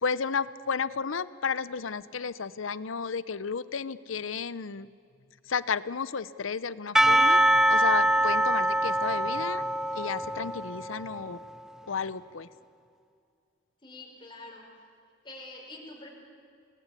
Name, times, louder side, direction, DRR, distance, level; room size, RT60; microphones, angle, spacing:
voice 1, 0.0-4.9 5.5-7.4 7.7-9.6 9.9-11.4 11.9-12.5, left 5 dB, 85° left, 17 dB, 0.7 m, -32 dB
Percussion / Church bell, 7.0-11.4, right 1 dB, 5° right, 0.5 m, -24 dB
voice 2, 13.8-14.7 15.2-16.1, left 2 dB, 25° left, -1 dB, 4.9 m, -45 dB
27.5 x 19.0 x 8.4 m, 2.5 s
head